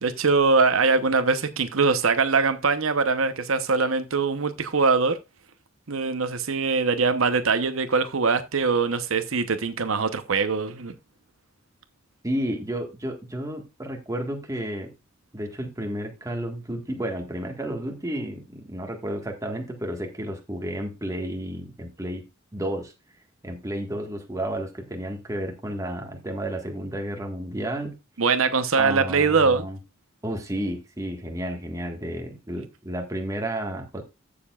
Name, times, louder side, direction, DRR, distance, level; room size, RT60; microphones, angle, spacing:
voice 1, 0.0-5.2 5.9-10.9 28.2-29.7, right 4 dB, 80° right, 0.9 m, -22 dB
voice 2, 12.2-14.9 15.3-22.2 22.5-22.9 23.4-28.0 28.8-29.8 30.2-34.0, right 1 dB, 15° right, 1.6 m, -32 dB
14.5 x 6.9 x 2.4 m
head